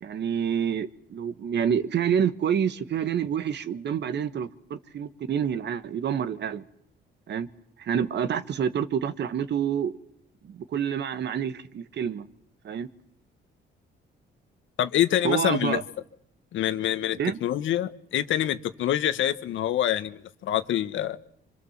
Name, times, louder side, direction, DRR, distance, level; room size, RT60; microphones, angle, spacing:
voice 1, 0.0-6.6 7.3-7.5 7.8-9.9 10.4-12.3 12.6-12.9 15.2-15.8 17.1-17.4, right 8 dB, 60° right, 1.5 m, -28 dB
voice 2, 14.8-15.8 16.5-21.2, left 11 dB, 80° left, 1.4 m, -26 dB
25.5 x 25.0 x 7.4 m
cardioid pair, 90°, 20 cm